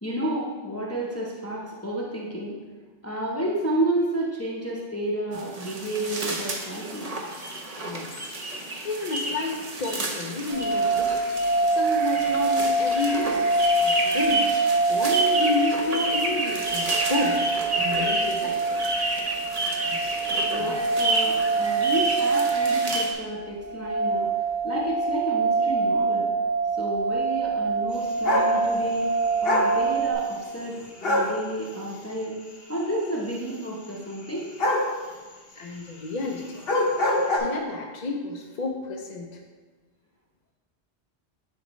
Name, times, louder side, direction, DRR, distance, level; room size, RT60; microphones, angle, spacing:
voice 1, 0.0-2.6 3.0-7.1 20.1-26.3 26.8-29.1 29.4-32.3 32.7-34.5, right 1 dB, 15° left, -5 dB, 0.8 m, -31 dB
sound 1, 5.3-23.1, right 2 dB, 40° right, 0.8 m, -30 dB
voice 2, 7.8-8.2 8.8-11.2 11.8-13.4 13.8-14.5 14.9-17.4 17.8-18.8 35.6-36.6 37.4-39.4, left 2 dB, 45° left, 1 dB, 0.6 m, -30 dB
sound 2, 10.5-30.1, right 3 dB, 90° right, 2.6 m, -25 dB
sound 3, 28.2-28.5 29.4-29.7 31.0-31.3 34.6-34.9 36.5-37.4, left 1 dB, 65° left, 1.2 m, -23 dB
10.0 x 4.2 x 3.1 m, 1.4 s
omnidirectional pair, 1.1 m